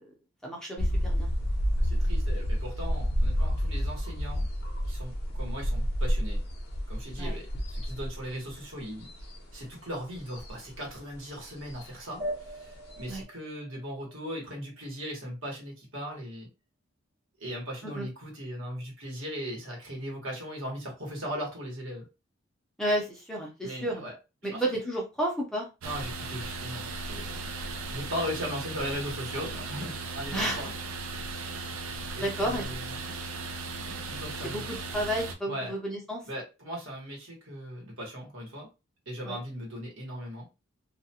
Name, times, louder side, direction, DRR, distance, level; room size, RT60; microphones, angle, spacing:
voice 1, 0.4-1.3 7.2-7.3 13.1-13.2 17.9-18.0 22.8-24.0 24.4-25.7 30.3-30.6 32.2-32.6 34.4-34.6 34.9-36.2 39.2-39.4, right 1 dB, 5° left, -2 dB, 0.6 m, -31 dB
sound 1, 0.8-13.2, equal, 50° left, 0.6 m, -30 dB
voice 2, 1.7-4.5 4.8-6.4 6.9-9.1 9.5-16.5 17.4-22.1 23.6-24.1 24.5-24.6 25.8-27.4 27.9-30.8 32.2-33.1 34.1-34.7 35.4-35.7 36.2-38.7 39.1-40.5, equal, 65° right, -2 dB, 1.2 m, -38 dB
sound 2, 12.2-15.2, equal, 35° right, 1.1 m, -40 dB
sound 3, 25.8-35.4, right 3 dB, 85° right, 0.5 m, -37 dB
2.4 x 2.2 x 2.7 m, 0.28 s
head